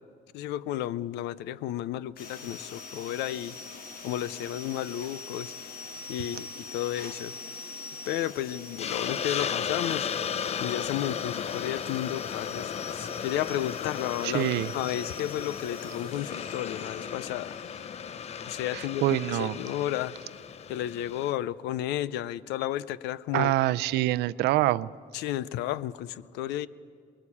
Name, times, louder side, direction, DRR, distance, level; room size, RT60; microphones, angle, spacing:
voice 1, 0.3-3.6 4.0-5.5 6.1-7.4 8.1-10.1 10.6-17.6 18.4-20.1 20.7-23.5 25.1-26.7, left 12 dB, 90° left, 19 dB, 0.6 m, -32 dB
sound 1, 2.2-19.4, left 4 dB, 60° left, 1.9 m, -44 dB
Hiss, 8.8-21.3, left 7 dB, 40° left, 0.6 m, -35 dB
voice 2, 14.2-14.7 18.7-19.6 23.3-24.9, right 16 dB, 80° right, 16 dB, 0.5 m, -25 dB
23.0 x 21.5 x 8.5 m, 2.1 s
cardioid pair, 110°, 17 cm